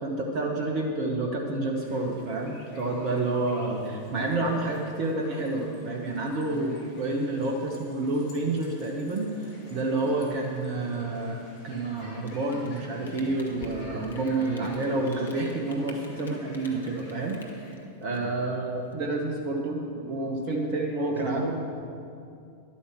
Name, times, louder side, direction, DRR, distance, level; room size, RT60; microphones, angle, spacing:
voice 1, 0.0-17.4 18.0-21.4, right 2 dB, 40° right, 1 dB, 1.2 m, -29 dB
sound 1, 1.7-17.7, left 1 dB, 50° left, 3.0 m, -49 dB
voice 2, 3.5-3.9 18.0-18.2 21.0-21.5, right 2 dB, 80° right, 1 dB, 1.9 m, -36 dB
Rain, 12.1-18.9, left 3 dB, 70° left, 1.3 m, -49 dB
11.5 x 8.7 x 6.1 m, 2.5 s
figure-of-eight pair, 90°, 0 cm